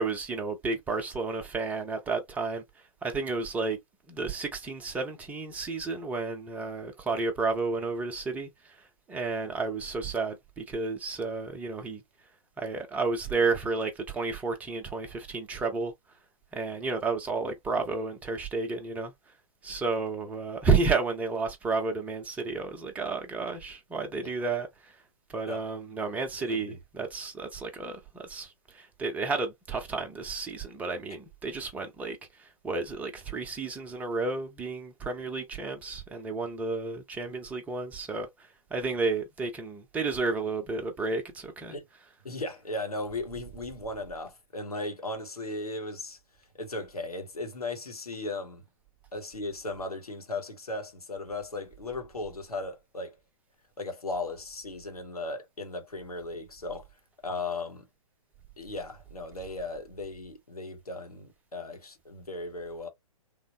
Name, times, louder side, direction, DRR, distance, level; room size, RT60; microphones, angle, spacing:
voice 1, 0.0-2.6 3.0-3.8 4.1-8.8 9.1-12.0 12.6-15.9 16.5-19.1 19.6-25.0 25.3-38.3 38.7-41.8, right 4 dB, 10° right, 0.5 m, -31 dB
voice 2, 26.5-26.8 41.7-41.9 42.2-46.2 46.5-48.6 49.1-53.2 53.8-56.9 57.2-57.9 58.6-62.9, left 2 dB, 85° left, 0.9 m, -37 dB
3.3 x 2.0 x 2.6 m
figure-of-eight pair, 120°, 19 cm